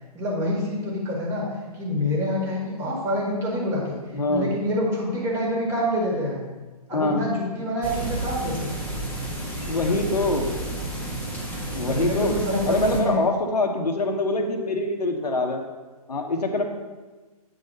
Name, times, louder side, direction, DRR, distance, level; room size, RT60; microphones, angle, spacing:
voice 1, 0.1-1.5 1.7-4.0 4.3-6.4 6.9-8.8 11.8-13.2, equal, 15° right, -3 dB, 1.9 m, -26 dB
voice 2, 4.1-4.5 6.9-7.2 9.7-10.6 11.7-12.3 12.7-15.6 16.1-16.6, left 2 dB, 85° left, 3 dB, 1.3 m, -24 dB
sound 1, 7.8-13.0, right 2 dB, 5° left, 1.4 m, -31 dB
8.7 x 4.1 x 5.4 m, 1.3 s
hypercardioid pair, 140°, 20 cm